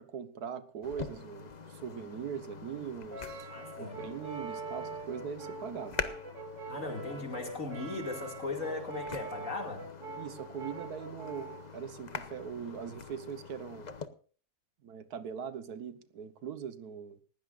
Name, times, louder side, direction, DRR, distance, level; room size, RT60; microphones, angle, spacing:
voice 1, 0.0-3.5 3.8-6.0 7.1-7.3 10.2-13.9 14.8-17.2, right 7 dB, 85° right, 1.6 m, -41 dB
sound 1, 0.8-14.1, left 5 dB, 35° left, 0.8 m, -45 dB
Brass instrument, 3.1-11.7, right 3 dB, 55° right, 2.8 m, -43 dB
voice 2, 3.5-4.0 6.7-9.9, left 3 dB, 55° left, 2.8 m, -38 dB
19.5 x 15.5 x 2.5 m
omnidirectional pair, 1.6 m